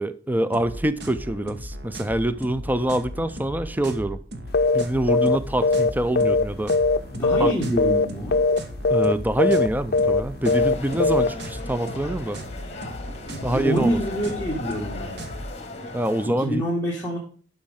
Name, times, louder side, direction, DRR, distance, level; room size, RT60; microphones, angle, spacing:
voice 1, 0.0-4.2 4.7-6.7 7.4-7.5 8.9-12.4 13.4-14.0 15.9-16.6, right 1 dB, 10° right, 0.5 m, -25 dB
sound 1, 0.5-15.5, equal, 65° right, 1.3 m, -37 dB
sound 2, 4.5-4.8 5.1-5.4 5.6-7.0 7.2-7.5 7.8-8.1 8.3-8.6 8.8-9.1 9.4-9.7 9.9-10.2 10.5-10.7 11.0-11.3, left 3 dB, 55° left, 0.6 m, -19 dB
voice 2, 7.1-8.4 13.3-15.1 16.4-17.2, right 1 dB, 10° left, 1.7 m, -26 dB
sound 3, 10.4-16.3, left 3 dB, 35° left, 1.7 m, -37 dB
11.5 x 5.3 x 3.7 m
head